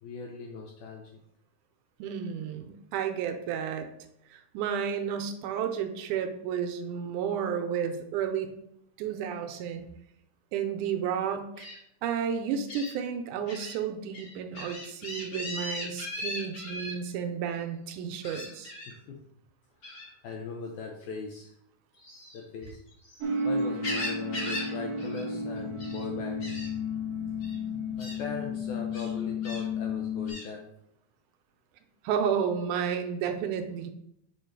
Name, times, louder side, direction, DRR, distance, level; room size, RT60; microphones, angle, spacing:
voice 1, 0.0-1.0 18.9-19.2 19.8-21.6 22.3-22.8 23.2-26.6 28.0-30.6, left 4 dB, 75° left, 1 dB, 1.9 m, -40 dB
voice 2, 2.0-3.9 4.5-8.5 9.0-9.8 10.5-11.7 12.0-18.7 32.0-33.9, right 7 dB, 80° right, 6 dB, 1.9 m, -32 dB
Gull seagull, 11.6-11.8 12.7-12.9 13.5-13.7 14.1-16.9 18.2-18.9 19.8-20.1 22.0-23.2 23.6-24.7 25.0-25.2 25.6-26.0 26.4-26.7 27.4-27.6 28.0-28.2 28.9-29.6 30.3-30.5, left 1 dB, 40° left, 2.3 m, -38 dB
sound 1, 23.2-30.3, left 3 dB, 65° right, 1.6 m, -32 dB
5.2 x 5.1 x 4.5 m, 0.77 s
omnidirectional pair, 3.8 m